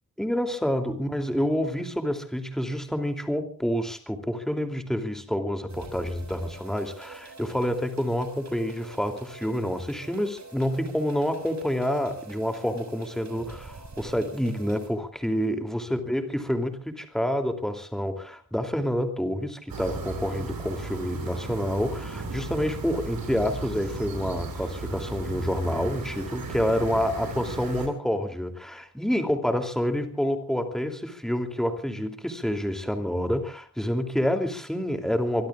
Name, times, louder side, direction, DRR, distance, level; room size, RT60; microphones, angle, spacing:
voice 1, 0.2-35.5, equal, ahead, 5 dB, 2.9 m, -28 dB
sound 1, 5.7-14.9, right 4 dB, 50° right, 6.5 m, -45 dB
sound 2, 19.7-27.9, right 3 dB, 80° right, 6.4 m, -36 dB
25.5 x 23.5 x 2.4 m, 0.41 s
wide cardioid pair, 130°, 34 cm